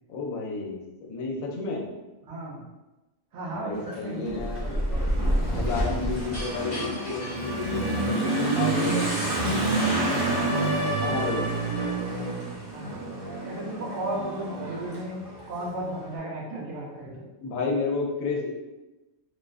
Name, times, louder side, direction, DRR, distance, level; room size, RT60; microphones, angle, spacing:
voice 1, 0.1-1.9 3.5-4.6 5.5-9.6 11.0-11.5 17.4-18.5, left 4 dB, 85° left, -1 dB, 1.0 m, -31 dB
voice 2, 2.2-2.6 3.3-4.4 11.0-11.2 12.7-13.1 13.4-15.2 15.5-17.3, right 1 dB, 65° right, -3 dB, 0.8 m, -34 dB
Motorcycle / Accelerating revving vroom, 3.7-16.1, right 2 dB, 35° right, 0.7 m, -29 dB
sound 1, 4.2-8.3, equal, 35° left, 0.5 m, -29 dB
sound 2, 7.1-12.1, left 1 dB, ahead, 0.8 m, -35 dB
2.5 x 2.3 x 2.3 m, 1.1 s
omnidirectional pair, 1.4 m